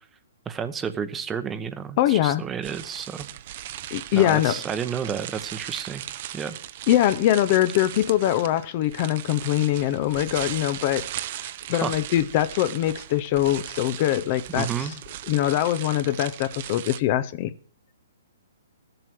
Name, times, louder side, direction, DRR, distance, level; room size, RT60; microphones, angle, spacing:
voice 1, 0.5-3.3 4.1-6.0 6.3-6.5 11.7-11.9 14.5-14.9, right 7 dB, 15° right, 0.8 m, -31 dB
voice 2, 2.0-2.4 3.9-4.6 6.9-11.1 11.4-14.9 15.3-17.5, left 13 dB, 40° left, 0.6 m, -23 dB
sound 1, 2.6-17.0, right 12 dB, 45° right, 0.6 m, -37 dB
13.5 x 7.8 x 6.1 m
hypercardioid pair, 145°, 0 cm